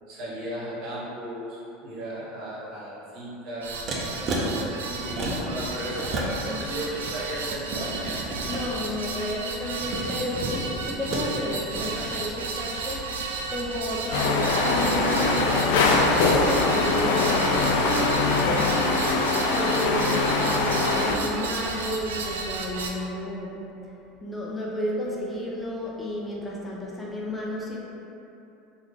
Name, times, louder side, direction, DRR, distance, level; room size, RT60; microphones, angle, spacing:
voice 1, 0.1-3.7 4.4-8.2, right 1 dB, 60° right, -6 dB, 1.0 m, -36 dB
sound 1, 3.6-22.9, right 4 dB, 90° right, 0.3 m, -33 dB
sound 2, 3.9-4.4 5.0-5.6 5.9-6.6 6.9-8.7 9.6-11.3 11.6-11.9, right 2 dB, 45° right, 0.6 m, -32 dB
voice 2, 8.5-18.3 19.1-24.0 24.2-27.8, left 1 dB, 10° left, -4 dB, 0.5 m, -32 dB
sound 3, 14.1-21.2, left 3 dB, 75° left, 0.3 m, -22 dB
3.5 x 2.3 x 3.2 m, 2.9 s
hypercardioid pair, 95°, 0 cm